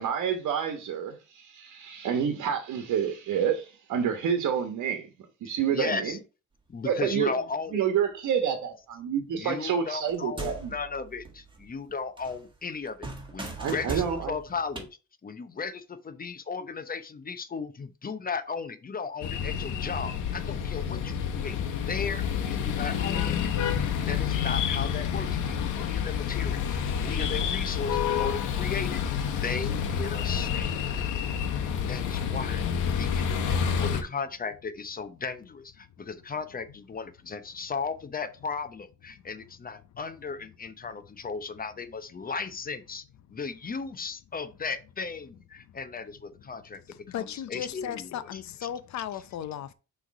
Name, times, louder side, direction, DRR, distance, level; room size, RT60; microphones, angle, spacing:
voice 1, 0.0-5.1 5.4-6.2 6.8-7.3 7.7-10.7 13.6-14.3, right 8 dB, 75° right, 1.2 m, -28 dB
voice 2, 5.4-6.2 6.7-7.8 9.3-14.9 15.2-23.4 24.1-31.1 31.8-43.0 43.3-46.8 47.1-48.4, left 5 dB, 30° left, 0.7 m, -36 dB
sound 1, 10.0-11.9 12.2-14.9, right 3 dB, 15° right, 1.6 m, -39 dB
sound 2, 19.2-34.0, left 8 dB, 85° left, 1.1 m, -29 dB
voice 3, 46.9-49.7, left 10 dB, 65° left, 0.7 m, -36 dB
6.2 x 3.3 x 4.7 m
cardioid pair, 90°, 30 cm